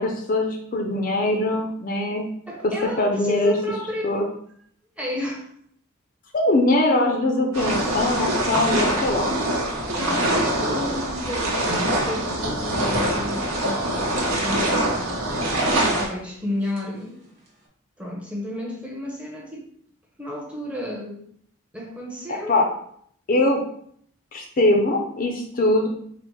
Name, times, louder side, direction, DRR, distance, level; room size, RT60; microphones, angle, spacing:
voice 1, 0.0-2.3 2.6-2.7 3.0-3.5 4.0-4.2 6.3-9.3 22.3-22.6 23.3-23.6 24.3-25.9, left 2 dB, 40° left, 3 dB, 0.4 m, -22 dB
voice 2, 2.5-4.1 5.0-5.5 9.9-15.3 15.8-17.2 18.0-19.6 20.2-21.2 21.7-22.7, left 1 dB, 5° right, -2 dB, 0.7 m, -32 dB
sound 1, 7.5-16.1, right 1 dB, 85° right, 1.0 m, -24 dB
sound 2, 11.8-16.2 16.5-17.7, right 2 dB, 55° right, 0.9 m, -40 dB
4.1 x 2.0 x 4.5 m, 0.65 s
head